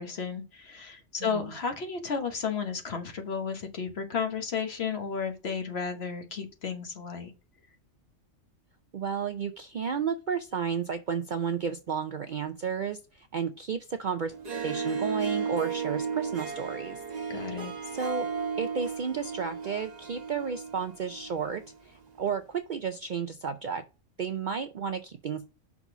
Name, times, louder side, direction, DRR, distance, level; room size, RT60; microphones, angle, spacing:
voice 1, 0.0-7.3 17.3-17.7, left 6 dB, 55° left, 1.4 m, -33 dB
voice 2, 1.2-1.5 8.9-14.3 14.6-17.0 17.9-18.3 18.6-23.8 24.2-25.5, right 6 dB, 55° right, 0.5 m, -32 dB
Harp, 14.3-21.7, right 6 dB, 35° right, 1.1 m, -34 dB
6.0 x 4.0 x 5.8 m
omnidirectional pair, 1.3 m